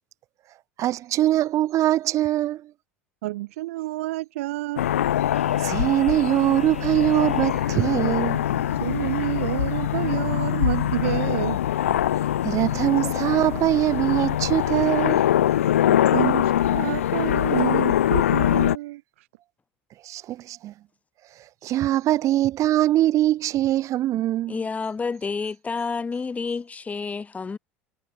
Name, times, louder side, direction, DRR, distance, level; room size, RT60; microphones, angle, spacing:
voice 1, 0.8-2.7 5.6-8.6 12.4-15.3 20.0-20.7 21.6-24.6, right 14 dB, 45° right, 1.2 m, -22 dB
voice 2, 3.2-4.9 8.8-11.6 15.9-19.3, right 18 dB, 70° right, 3.7 m, -29 dB
sound 1, 4.8-18.8, left 11 dB, 80° left, 0.4 m, -23 dB
sound 2, 5.3-9.9, equal, ahead, 6.2 m, -45 dB
voice 3, 24.5-27.6, left 4 dB, 20° left, 1.0 m, -29 dB
hypercardioid pair, 75°, 7 cm